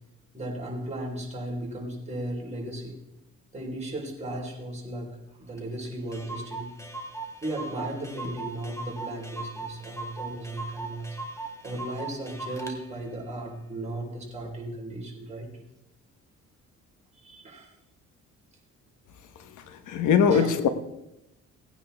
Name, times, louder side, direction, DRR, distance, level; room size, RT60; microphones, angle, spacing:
voice 1, 0.3-3.0 3.5-6.7 7.4-11.2 11.6-15.6 17.2-17.7 20.3-20.5, right 1 dB, 20° right, -2 dB, 4.2 m, -36 dB
Clock, 5.6-5.7 5.8-5.9 6.1-12.8, right 3 dB, 10° left, 1.9 m, -39 dB
voice 2, 19.6-20.7, left 7 dB, 80° left, 8 dB, 1.3 m, -22 dB
18.0 x 9.4 x 3.5 m, 0.92 s
cardioid pair, 90°, 30 cm